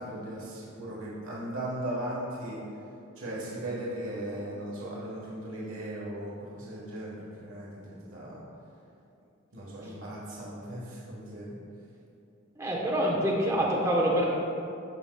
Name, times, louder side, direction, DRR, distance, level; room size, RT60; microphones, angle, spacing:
voice 1, 0.0-2.6 3.2-8.4 9.5-11.6, right 1 dB, 85° right, -6 dB, 1.3 m, -37 dB
voice 2, 12.6-14.3, equal, 15° right, -3 dB, 1.0 m, -26 dB
13.5 x 5.0 x 2.3 m, 2.7 s
head